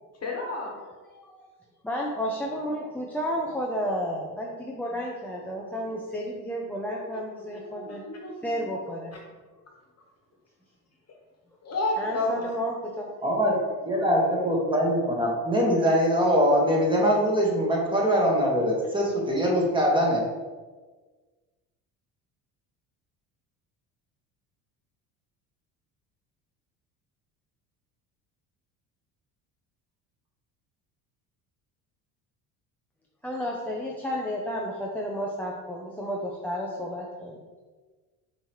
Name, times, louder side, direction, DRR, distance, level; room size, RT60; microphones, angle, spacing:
voice 1, 0.2-0.7 7.0-8.5 11.6-12.3, left 2 dB, 35° left, 0 dB, 1.2 m, -31 dB
voice 2, 1.1-1.5 1.8-8.0 8.4-9.1 12.0-13.2 33.2-37.4, equal, 5° left, -3 dB, 0.4 m, -32 dB
voice 3, 13.2-13.6 13.8-20.2, equal, 10° right, -3 dB, 1.3 m, -23 dB
5.5 x 2.9 x 3.0 m, 1.3 s
supercardioid pair, 80°, 44 cm